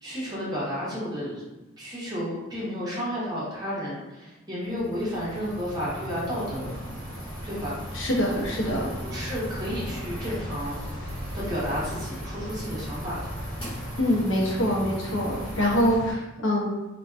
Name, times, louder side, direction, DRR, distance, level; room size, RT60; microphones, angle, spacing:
voice 1, 0.0-1.4 1.8-6.8 7.4-7.8 9.0-10.8 11.3-13.2 14.8-15.0, equal, 20° right, -8 dB, 0.8 m, -32 dB
sound 1, 4.7-16.1, equal, 25° left, 1.3 m, -36 dB
voice 2, 7.9-8.9 14.0-16.7, equal, 70° left, -2 dB, 0.6 m, -24 dB
2.4 x 2.2 x 2.3 m, 1.0 s
head